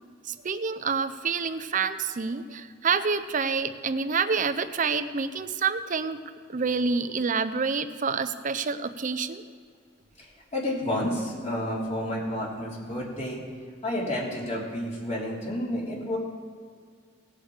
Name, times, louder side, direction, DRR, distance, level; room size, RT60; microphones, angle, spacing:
voice 1, 0.2-6.2 6.5-9.4, right 5 dB, 40° right, 11 dB, 0.6 m, -28 dB
voice 2, 10.2-13.4 13.8-16.2, left 1 dB, 35° left, -4 dB, 3.1 m, -30 dB
18.0 x 6.4 x 5.0 m, 2.1 s
head